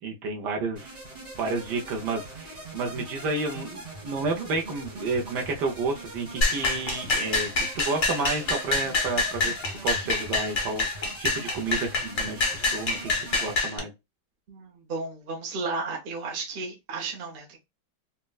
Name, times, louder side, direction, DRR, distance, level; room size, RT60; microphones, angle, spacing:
voice 1, 0.0-1.0 1.4-13.1 13.4-13.9, right 3 dB, 70° right, 1.2 m, -31 dB
sound 1, 0.8-13.6, right 1 dB, 25° right, 1.1 m, -42 dB
sound 2, 6.4-13.8, left 3 dB, 65° left, 0.5 m, -26 dB
voice 2, 14.5-17.6, right 3 dB, 45° right, 0.7 m, -33 dB
4.2 x 2.2 x 2.2 m
omnidirectional pair, 2.1 m